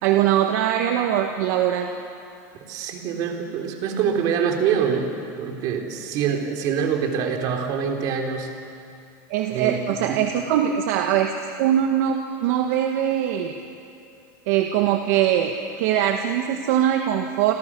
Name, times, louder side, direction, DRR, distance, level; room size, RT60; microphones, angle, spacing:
voice 1, 0.0-1.9 9.3-11.3 11.6-13.6 14.5-17.5, right 10 dB, 55° right, 3 dB, 1.7 m, -22 dB
voice 2, 2.7-8.5 9.5-10.2, right 7 dB, 40° right, 2 dB, 3.5 m, -25 dB
29.5 x 25.5 x 6.3 m, 2.5 s
supercardioid pair, 165°, 10 cm